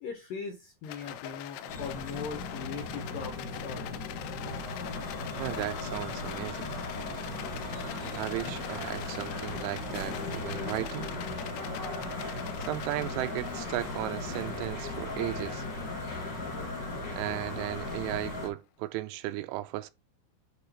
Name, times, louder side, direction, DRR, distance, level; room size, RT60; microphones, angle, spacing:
voice 1, 0.0-4.0, left 6 dB, 70° left, 2.1 m, -40 dB
Rattle, 0.8-18.2, left 12 dB, 85° left, 3.1 m, -44 dB
sound 1, 1.7-18.5, left 2 dB, 40° left, 1.6 m, -37 dB
voice 2, 5.4-6.7 8.1-11.1 12.6-15.6 17.2-19.9, right 16 dB, 90° right, 3.1 m, -35 dB
Bowed string instrument, 6.8-12.6, right 8 dB, 60° right, 2.1 m, -51 dB
8.7 x 3.3 x 4.7 m
omnidirectional pair, 5.5 m